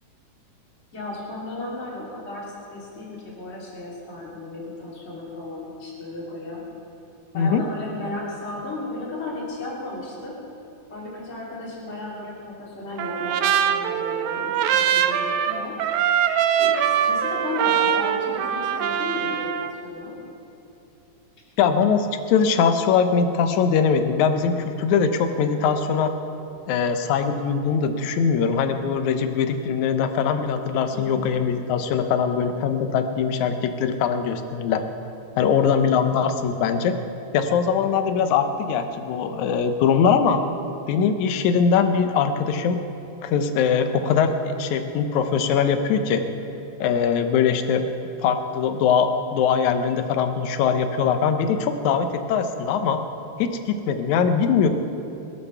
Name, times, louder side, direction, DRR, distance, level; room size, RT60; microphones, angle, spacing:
voice 1, 0.9-6.6 7.3-10.4 10.9-15.7 16.5-20.2 30.9-31.2 35.4-35.7, left 2 dB, 20° left, -6 dB, 3.2 m, -34 dB
Trumpet, 13.0-19.7, right 9 dB, 80° right, 2.0 m, -23 dB
voice 2, 21.6-26.1 26.7-34.8 35.4-37.0 37.3-40.4 40.9-42.8 43.2-46.2 46.8-47.9 48.2-53.0 53.4-54.7, left 6 dB, 75° left, 8 dB, 2.2 m, -21 dB
22.0 x 7.8 x 6.9 m, 2.9 s
omnidirectional pair, 3.5 m